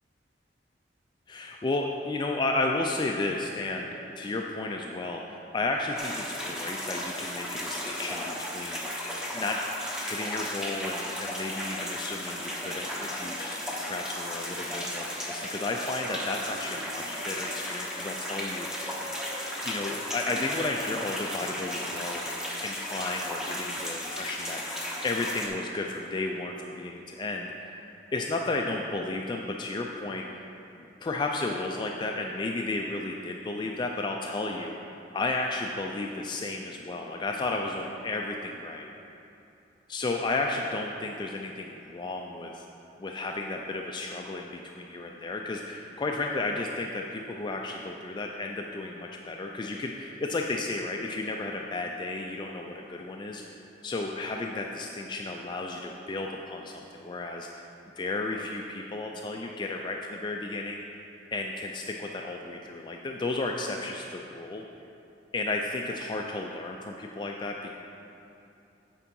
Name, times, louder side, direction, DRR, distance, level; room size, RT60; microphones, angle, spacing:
voice 1, 1.3-9.6 10.0-19.0 19.6-22.2 22.6-30.5 31.0-34.8 35.1-38.9 39.9-42.7 43.0-53.4 53.8-57.6 58.0-60.8 61.3-64.6 65.3-67.8, left 2 dB, 25° left, 1 dB, 0.3 m, -33 dB
sound 1, 6.0-25.5, equal, 5° right, 0.9 m, -35 dB
8.6 x 4.6 x 5.3 m, 2.8 s
head